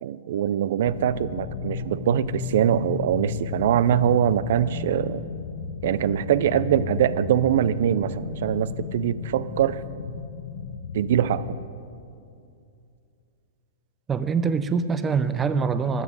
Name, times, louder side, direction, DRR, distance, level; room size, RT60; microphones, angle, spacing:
voice 1, 0.0-5.2 5.8-9.8 10.9-11.6, right 10 dB, 65° right, 16 dB, 0.5 m, -23 dB
sound 1, 0.8-11.6, left 6 dB, 65° left, 0.9 m, -34 dB
voice 2, 14.1-16.0, right 5 dB, 15° right, 12 dB, 0.5 m, -24 dB
12.5 x 7.3 x 8.1 m, 2.5 s
hypercardioid pair, 140°, 0 cm